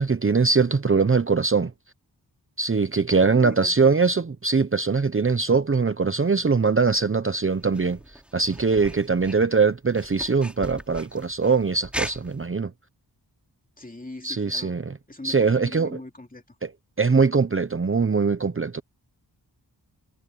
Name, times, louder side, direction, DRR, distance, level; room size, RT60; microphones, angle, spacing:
voice 1, 0.0-1.7 2.6-12.7 14.2-14.9 15.2-16.0 16.6-16.7 17.0-18.8, right 4 dB, 30° right, 0.9 m, -22 dB
voice 2, 3.1-3.7 13.8-14.7 15.1-16.6, left 2 dB, 20° left, 2.9 m, -41 dB
sound 1, 7.5-12.5, equal, 5° right, 3.9 m, -39 dB
wide cardioid pair, 65°, 42 cm